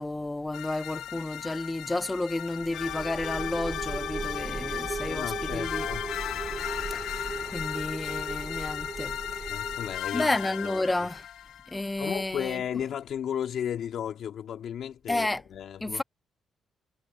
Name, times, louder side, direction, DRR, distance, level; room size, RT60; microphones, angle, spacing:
voice 1, 0.0-5.9 6.9-9.2 10.1-11.3 11.7-12.6 15.1-15.4 15.8-16.0, left 2 dB, 10° left, 0.7 m, -31 dB
sound 1, 0.5-11.8, left 12 dB, 85° left, 0.5 m, -36 dB
sound 2, 2.6-10.4, right 4 dB, 25° right, 0.7 m, -37 dB
voice 2, 5.1-6.1 9.5-10.3 10.6-11.1 12.0-16.0, left 9 dB, 65° left, 2.2 m, -34 dB
cardioid pair, 135°, 0 cm